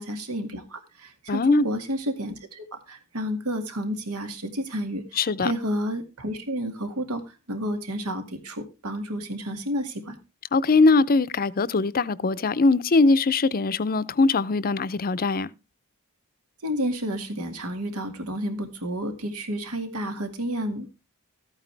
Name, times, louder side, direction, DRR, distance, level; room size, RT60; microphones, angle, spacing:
voice 1, 0.0-10.2 16.6-20.9, equal, 85° right, 2.1 m, -31 dB
voice 2, 1.3-1.7 5.2-5.5 10.5-15.5, left 3 dB, 40° left, 0.6 m, -21 dB
14.0 x 9.0 x 3.3 m
head